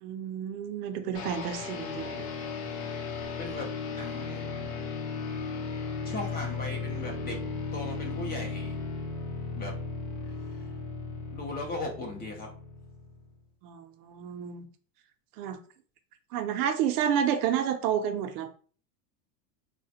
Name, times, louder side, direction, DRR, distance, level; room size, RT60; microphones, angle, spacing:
voice 1, 0.0-2.3 13.6-14.7 15.4-15.6 16.3-18.5, right 9 dB, 85° right, 0.6 m, -30 dB
sound 1, 1.1-13.4, left 4 dB, 85° left, 0.8 m, -36 dB
voice 2, 3.4-4.5 6.0-7.4 7.7-8.8 9.5-9.7 11.3-12.5, left 2 dB, 20° left, 0.5 m, -38 dB
3.2 x 2.1 x 2.7 m
supercardioid pair, 140°, 44 cm